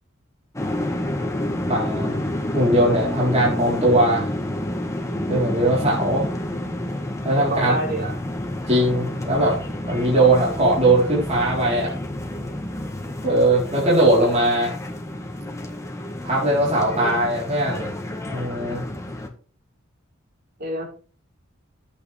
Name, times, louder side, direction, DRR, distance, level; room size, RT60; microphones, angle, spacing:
sound 1, 0.5-19.3, left 1 dB, 15° left, 1.8 m, -29 dB
voice 1, 1.7-2.2 2.5-4.3 5.3-6.3 7.2-7.7 8.7-9.6 9.9-11.9 13.2-14.8 16.2-17.9 18.2-18.9, right 1 dB, 35° right, -6 dB, 4.2 m, -20 dB
voice 2, 7.4-8.2 16.8-17.2 20.6-20.9, right 2 dB, 50° right, -2 dB, 5.6 m, -27 dB
14.0 x 8.8 x 3.5 m, 0.37 s
head